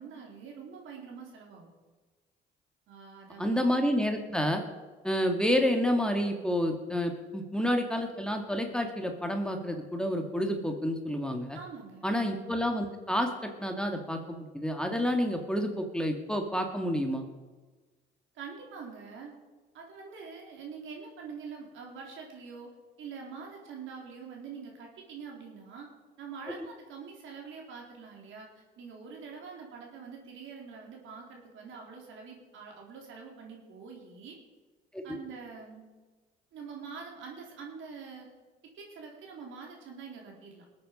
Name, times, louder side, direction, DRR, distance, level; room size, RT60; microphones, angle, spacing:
voice 1, 0.0-1.7 2.9-3.6 11.5-12.1 18.3-19.3 19.7-22.7 23.0-25.9 26.2-28.5 28.8-34.4 35.0-35.9 36.5-38.3 38.8-40.6, right 5 dB, 70° right, 0 dB, 4.0 m, -45 dB
voice 2, 3.4-4.6 5.0-11.6 12.0-17.2 34.9-35.2, equal, 5° left, 4 dB, 2.2 m, -29 dB
20.0 x 8.6 x 5.4 m, 1.3 s
supercardioid pair, 65°, 21 cm